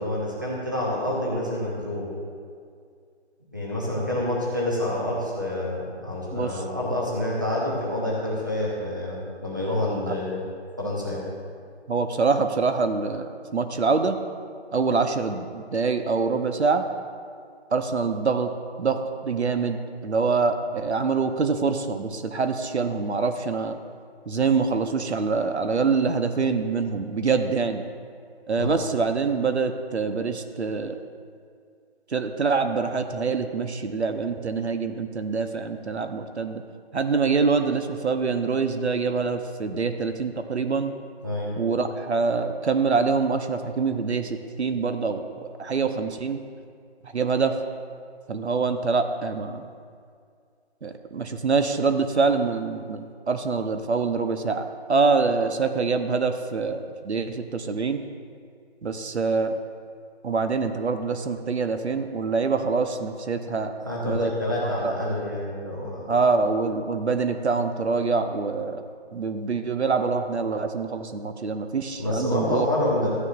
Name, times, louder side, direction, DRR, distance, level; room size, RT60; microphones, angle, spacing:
voice 1, 0.0-2.1 3.5-10.4 10.8-11.3 28.6-28.8 41.2-41.5 63.9-66.1 72.0-73.1, left 1 dB, 20° right, -5 dB, 0.9 m, -27 dB
voice 2, 6.3-6.6 10.1-10.2 11.9-14.2 14.7-16.8 17.7-18.5 18.8-23.8 24.3-27.8 28.5-31.0 32.1-36.6 36.9-40.9 41.6-46.4 47.0-47.6 48.3-49.7 50.8-58.0 58.8-59.5 60.2-63.7 64.0-64.3 64.6-64.9 66.1-68.8 69.1-72.7, right 4 dB, 75° right, 7 dB, 0.8 m, -25 dB
14.5 x 9.7 x 2.5 m, 2.2 s
figure-of-eight pair, 180°, 33 cm